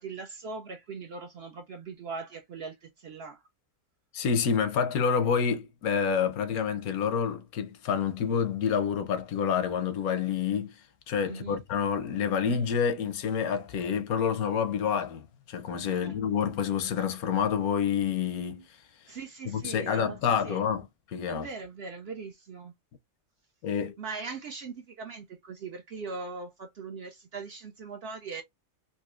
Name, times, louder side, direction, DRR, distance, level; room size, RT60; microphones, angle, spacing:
voice 1, 0.0-3.4 11.2-11.6 15.9-16.2 19.1-20.6 21.3-22.7 24.0-28.4, right 4 dB, 60° right, 0.6 m, -40 dB
voice 2, 4.1-10.7 11.1-18.7 19.5-21.5 23.6-23.9, left 7 dB, 90° left, 1.2 m, -28 dB
4.0 x 2.6 x 2.4 m
omnidirectional pair, 1.5 m